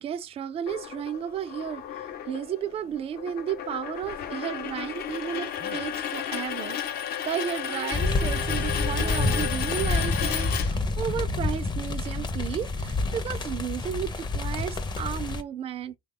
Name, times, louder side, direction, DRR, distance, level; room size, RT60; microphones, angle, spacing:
voice 1, 0.0-16.0, right 9 dB, 35° right, 0.4 m, -33 dB
sound 1, 0.7-11.2, left 10 dB, 65° left, 0.6 m, -33 dB
Dog, 6.1-9.5, right 7 dB, 80° right, 0.7 m, -42 dB
sound 2, 7.9-15.4, left 3 dB, 25° left, 0.5 m, -28 dB
3.4 x 2.2 x 3.6 m
cardioid pair, 110°, 17 cm